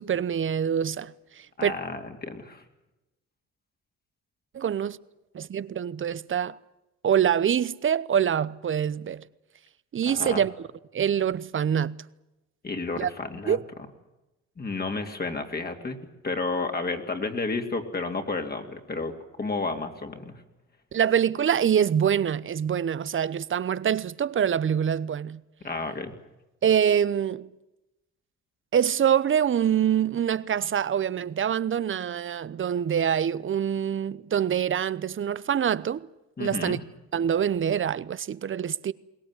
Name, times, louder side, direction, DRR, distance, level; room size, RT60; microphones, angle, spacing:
voice 1, 0.0-1.7 4.5-5.0 5.3-6.6 7.0-9.2 9.9-10.5 10.9-12.0 13.0-13.1 13.5-13.6 20.9-25.4 26.6-27.5 28.7-36.1 36.4-36.8 37.1-38.9, right 8 dB, 40° right, 0.8 m, -25 dB
voice 2, 1.6-2.6 10.0-10.4 12.6-13.6 14.6-16.0 16.2-20.3 25.6-26.1 36.4-36.8, left 3 dB, 30° left, 2.8 m, -31 dB
22.0 x 18.5 x 9.8 m
cardioid pair, 90°, 30 cm